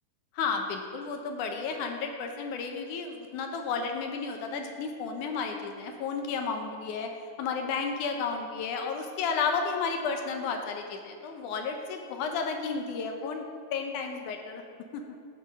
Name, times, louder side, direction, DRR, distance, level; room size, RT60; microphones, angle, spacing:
voice 1, 0.3-7.1 7.4-13.5 13.7-14.6 14.9-15.0, left 5 dB, 80° left, 4 dB, 2.3 m, -32 dB
11.0 x 8.6 x 5.3 m, 2.4 s
omnidirectional pair, 3.5 m